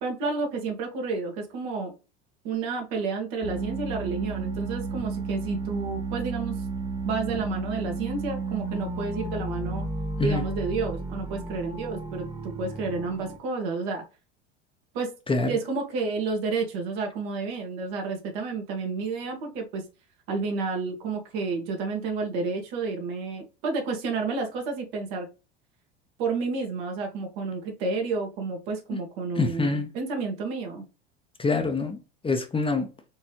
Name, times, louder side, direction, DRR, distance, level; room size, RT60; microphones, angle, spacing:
voice 1, 0.0-1.9 2.4-6.6 7.0-9.9 10.2-14.0 14.9-15.1 15.5-19.8 20.3-25.3 26.2-30.8, right 4 dB, 65° right, 1.6 m, -30 dB
sound 1, 3.4-13.4, right 3 dB, 15° right, 0.8 m, -33 dB
voice 2, 29.4-29.9 31.4-32.0 32.2-32.9, left 3 dB, 15° left, 0.8 m, -25 dB
4.4 x 3.1 x 3.0 m
hypercardioid pair, 85°, 33 cm